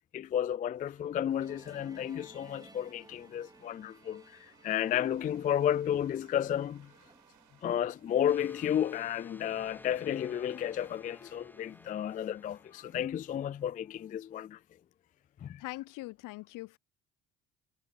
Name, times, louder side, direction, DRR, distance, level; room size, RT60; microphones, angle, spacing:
voice 1, 0.1-6.9 7.6-14.6 15.4-15.6, left 10 dB, 25° left, 0.3 m, -32 dB
sound 1, 0.8-8.4, right 11 dB, 55° right, 6.6 m, -65 dB
Musical instrument, 1.4-7.9, right 2 dB, 10° right, 4.9 m, -58 dB
sound 2, 8.3-13.8, left 1 dB, 5° left, 1.2 m, -55 dB
voice 2, 15.6-16.8, left 19 dB, 60° left, 0.7 m, -42 dB
hypercardioid pair, 65°, 36 cm